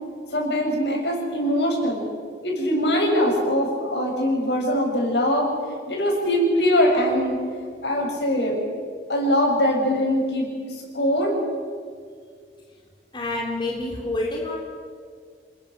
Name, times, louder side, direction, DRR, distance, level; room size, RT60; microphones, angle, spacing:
voice 1, 0.3-2.1 2.4-5.5 5.9-7.4 7.8-8.6 9.1-11.4, equal, 80° left, 0 dB, 7.2 m, -22 dB
voice 2, 13.1-14.6, left 2 dB, 25° left, -1 dB, 3.4 m, -27 dB
27.0 x 21.5 x 6.7 m, 2.1 s
head